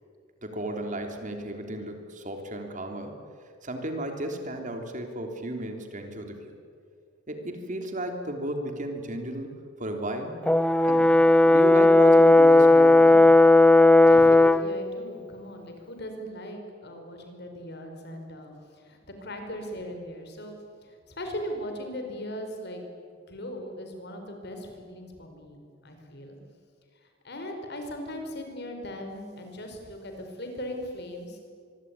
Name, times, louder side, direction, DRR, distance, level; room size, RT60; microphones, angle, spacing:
voice 1, 0.4-3.2 3.6-6.5 7.3-9.5 9.8-10.3 10.9-13.3, right 1 dB, 40° right, 4 dB, 3.3 m, -34 dB
Brass instrument, 10.5-14.7, left 2 dB, 5° left, 0.6 m, -16 dB
voice 2, 14.1-22.8 23.3-26.4 27.2-31.4, equal, 55° left, 4 dB, 5.1 m, -39 dB
25.0 x 23.0 x 9.6 m, 2.2 s
head